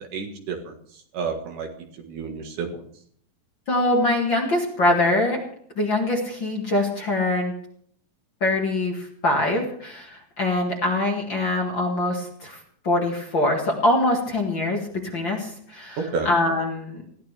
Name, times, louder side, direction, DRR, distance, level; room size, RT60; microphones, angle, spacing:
voice 1, 0.1-0.8 1.1-2.8 16.0-16.3, right 5 dB, 65° right, 3 dB, 3.0 m, -30 dB
voice 2, 3.7-5.4 5.8-7.5 8.4-17.0, left 2 dB, 40° left, 0 dB, 2.1 m, -23 dB
20.5 x 15.5 x 3.4 m, 0.63 s
omnidirectional pair, 4.0 m